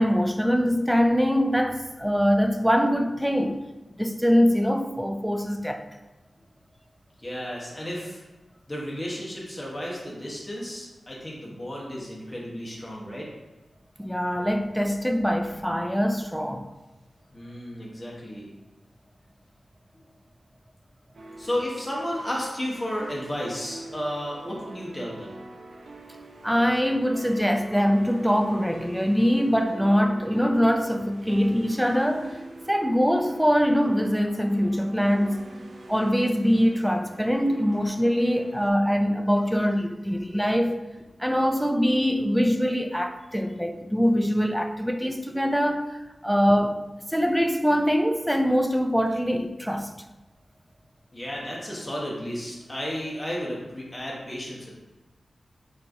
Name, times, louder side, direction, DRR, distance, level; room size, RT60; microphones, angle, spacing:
voice 1, 0.0-3.6 4.0-5.8 14.0-16.7 26.4-32.4 32.7-35.5 35.9-40.9 41.2-46.0 46.2-46.8 47.1-49.9, equal, ahead, 0.4 m, -23 dB
voice 2, 7.2-8.2 8.7-13.3 17.3-18.5 21.4-25.3 51.1-54.7, equal, 20° left, 1.1 m, -33 dB
sound 1, 21.1-38.7, right 2 dB, 70° right, 0.5 m, -44 dB
4.6 x 4.3 x 2.6 m
wide cardioid pair, 100°, 0 cm